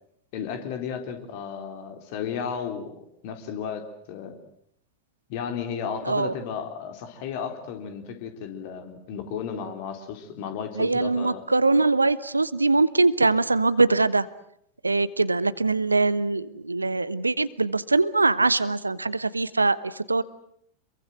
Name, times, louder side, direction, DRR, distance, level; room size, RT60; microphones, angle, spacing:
voice 1, 0.3-4.3 5.3-11.4, left 7 dB, 45° left, 6 dB, 3.9 m, -34 dB
voice 2, 10.8-14.3 14.8-20.2, right 3 dB, 80° right, 17 dB, 1.0 m, -22 dB
27.5 x 22.5 x 7.9 m, 0.71 s
figure-of-eight pair, 90°, 0 cm